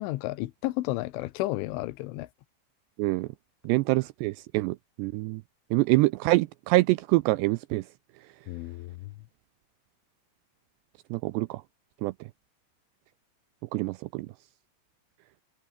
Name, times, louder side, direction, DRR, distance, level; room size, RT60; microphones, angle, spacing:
voice 1, 0.0-2.3 8.5-9.1, left 18 dB, 85° left, 3.4 m, -32 dB
voice 2, 3.6-5.4 5.7-7.9 11.1-11.6 12.0-12.1 13.7-14.3, right 21 dB, 85° right, 2.5 m, -25 dB
omnidirectional pair, 5.4 m